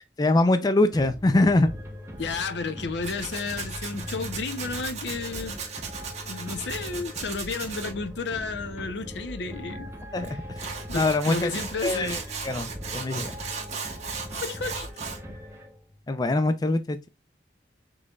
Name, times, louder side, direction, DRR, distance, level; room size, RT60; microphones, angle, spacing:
voice 1, 0.2-1.7 10.1-10.3 10.9-11.5 11.8-13.4 16.1-17.0, left 2 dB, 20° left, 0.4 m, -23 dB
sound 1, 0.9-16.0, equal, 15° right, 0.9 m, -40 dB
voice 2, 2.2-5.6 6.3-9.9 10.9-12.5 14.3-14.9, left 4 dB, 75° left, 0.6 m, -32 dB
Tools, 3.0-7.9 10.2-10.3 10.6-15.2, right 5 dB, 40° right, 1.4 m, -36 dB
6.2 x 3.2 x 2.3 m
head